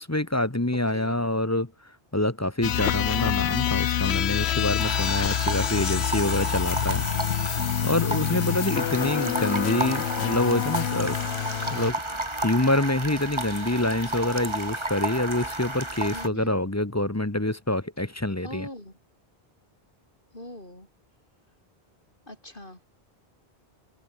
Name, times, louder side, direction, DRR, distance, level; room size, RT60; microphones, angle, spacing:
voice 1, 0.0-1.7 2.1-7.1 7.8-11.2 11.7-18.7, left 1 dB, 15° left, 1.2 m, -26 dB
sound 1, 2.6-11.9, left 11 dB, 85° left, 1.0 m, -27 dB
sound 2, 4.8-16.3, right 1 dB, 25° right, 2.9 m, -32 dB
voice 2, 8.3-8.7 16.1-16.5 18.4-19.0 20.3-20.9 22.3-22.9, left 1 dB, 55° left, 8.0 m, -41 dB
omnidirectional pair, 1.1 m